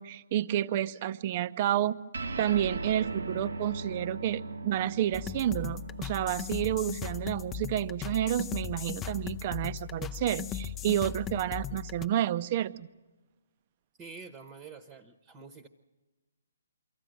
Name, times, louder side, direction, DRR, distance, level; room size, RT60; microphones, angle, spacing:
voice 1, 0.0-2.0 2.4-12.9, right 11 dB, 35° right, 15 dB, 0.6 m, -30 dB
sound 1, 2.1-8.9, right 3 dB, 75° right, 0.8 m, -40 dB
sound 2, 5.1-12.1, left 9 dB, 15° left, 0.6 m, -38 dB
voice 2, 14.0-15.7, right 4 dB, 20° right, 10 dB, 1.1 m, -47 dB
24.0 x 14.5 x 9.1 m, 1.2 s
hypercardioid pair, 145°, 0 cm